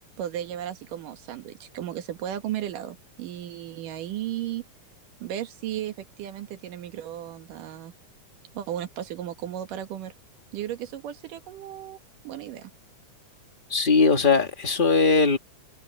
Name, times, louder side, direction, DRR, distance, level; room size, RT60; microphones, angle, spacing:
voice 1, 0.2-4.6 5.2-7.9 8.5-10.1 10.5-12.0 12.2-12.7, right 11 dB, 85° right, 3.1 m, -35 dB
voice 2, 13.7-15.4, left 4 dB, 25° left, 1.2 m, -20 dB
omnidirectional pair, 3.7 m